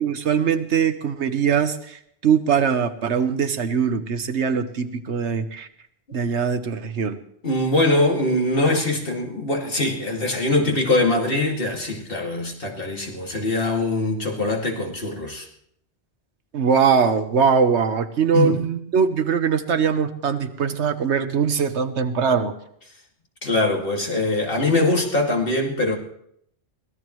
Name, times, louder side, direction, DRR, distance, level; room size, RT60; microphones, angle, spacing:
voice 1, 0.0-5.7 6.1-7.2 16.5-22.5, right 6 dB, 90° right, 9 dB, 1.3 m, -21 dB
voice 2, 7.4-15.5 18.3-18.6 23.4-26.0, left 2 dB, 55° left, 0 dB, 2.6 m, -22 dB
23.5 x 17.0 x 3.1 m, 0.72 s
omnidirectional pair, 1.1 m